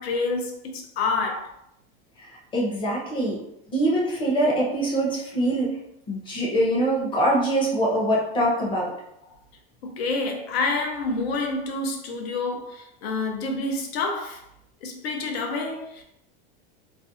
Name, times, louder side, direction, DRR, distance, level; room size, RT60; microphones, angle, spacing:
voice 1, 0.0-1.5 9.8-14.4 14.8-16.0, left 3 dB, 85° left, 0.7 m, -28 dB
voice 2, 2.2-3.4 3.7-5.8 6.1-8.9, right 1 dB, 15° left, 0.6 m, -24 dB
2.5 x 2.1 x 2.5 m
supercardioid pair, 150°, 31 cm